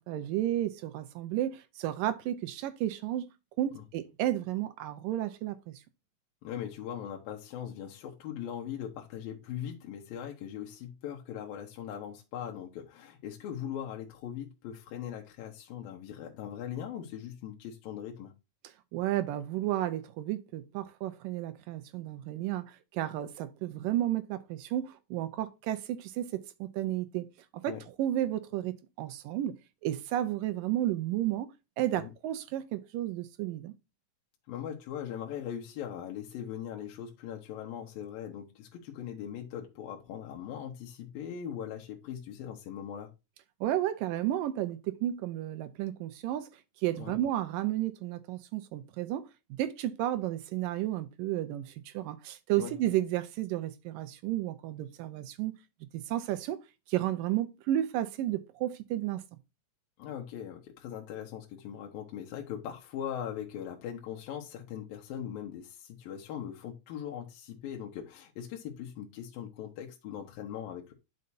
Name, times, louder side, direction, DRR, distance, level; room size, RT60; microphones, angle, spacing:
voice 1, 0.1-3.3 3.6-5.7 18.9-27.3 27.6-29.6 29.8-31.5 31.8-33.7 43.6-46.5 46.8-49.3 49.6-55.5 55.9-56.6 56.9-59.2, right 13 dB, 75° right, 2.2 m, -32 dB
voice 2, 6.4-18.3 27.7-27.8 32.0-32.1 34.5-43.1 47.0-47.2 52.6-52.7 60.0-70.9, left 9 dB, 75° left, 2.9 m, -40 dB
9.4 x 6.5 x 2.7 m
omnidirectional pair, 4.3 m